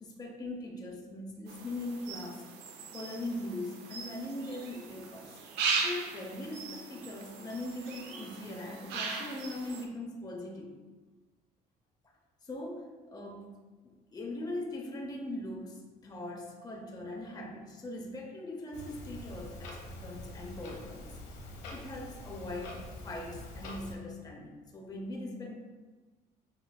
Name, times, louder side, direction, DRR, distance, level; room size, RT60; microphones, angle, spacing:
voice 1, 0.0-2.4 2.9-5.4 5.8-10.7 12.4-13.5 14.1-21.1 21.7-22.8 23.0-25.6, left 1 dB, 25° left, 0 dB, 0.7 m, -40 dB
sound 1, 1.5-9.9, right 4 dB, 90° right, 0.6 m, -38 dB
Clock, 18.7-23.9, left 1 dB, 90° left, 0.9 m, -45 dB
6.7 x 3.1 x 2.3 m, 1.3 s
cardioid pair, 110°, 17 cm